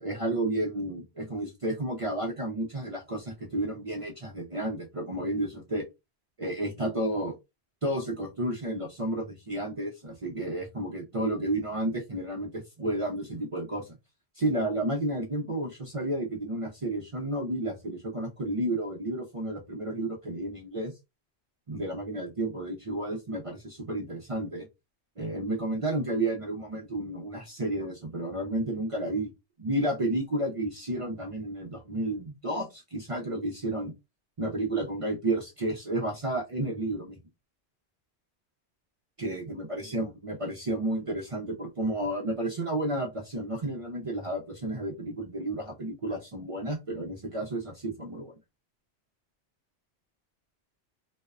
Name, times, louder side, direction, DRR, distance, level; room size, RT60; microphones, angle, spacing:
voice 1, 0.0-5.8 6.4-7.4 7.8-14.0 14.4-20.9 21.7-24.7 25.2-29.3 29.6-33.9 34.4-37.2 39.2-48.3, right 1 dB, 45° right, 0 dB, 0.5 m, -31 dB
2.6 x 2.1 x 2.3 m, 0.23 s
omnidirectional pair, 1.1 m